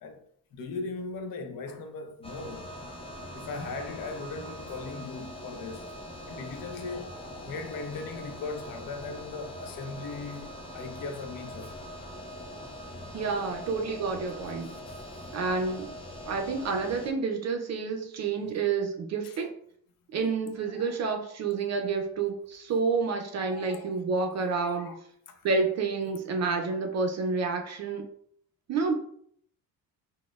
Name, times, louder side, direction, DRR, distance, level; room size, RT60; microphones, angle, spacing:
voice 1, 0.5-2.7 3.3-5.9 6.3-11.7 14.9-15.0 19.2-19.4 20.7-21.0 23.4-24.0 24.7-25.0 25.3-25.4, left 4 dB, 65° left, 0.6 m, -39 dB
sound 1, 2.2-17.1, equal, 15° left, 0.6 m, -42 dB
voice 2, 13.1-14.7 15.3-15.9 16.3-19.5 20.1-25.0 25.4-28.0 28.7-29.0, right 4 dB, 50° right, 0.5 m, -29 dB
4.0 x 2.1 x 2.3 m
cardioid pair, 95°, 35 cm